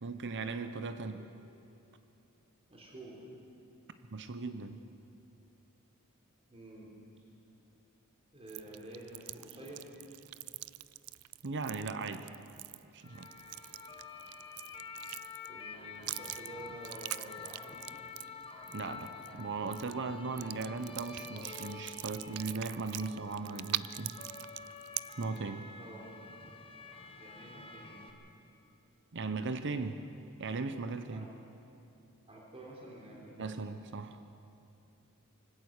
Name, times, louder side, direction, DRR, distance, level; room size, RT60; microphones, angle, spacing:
voice 1, 0.0-1.2 4.1-4.8 11.4-12.3 12.9-13.3 18.7-19.1 19.4-24.2 25.2-25.7 29.1-30.0 30.4-31.3 33.4-34.2, right 4 dB, 55° right, 9 dB, 0.8 m, -38 dB
voice 2, 2.7-3.3 6.5-7.0 8.3-9.9 15.4-18.1 25.8-26.1 27.2-28.1 31.1-31.3 32.3-33.5, right 1 dB, 25° right, -4 dB, 3.8 m, -49 dB
sound 1, 8.5-15.6 16.0-19.4 19.7-19.9 20.4-25.4, right 17 dB, 70° right, 0.4 m, -43 dB
sound 2, 13.0-28.1, left 4 dB, 25° left, 1.3 m, -48 dB
24.0 x 16.5 x 6.5 m, 2.7 s
head